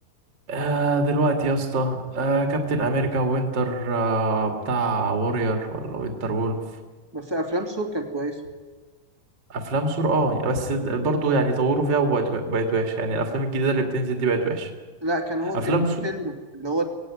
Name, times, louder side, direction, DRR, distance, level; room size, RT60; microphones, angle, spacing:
voice 1, 0.5-6.6 9.5-14.7 15.5-16.0, right 2 dB, 35° right, 3 dB, 2.4 m, -24 dB
voice 2, 7.1-8.4 15.0-16.8, right 1 dB, 10° right, 3 dB, 1.6 m, -28 dB
25.0 x 18.0 x 9.8 m, 1.3 s
omnidirectional pair, 4.8 m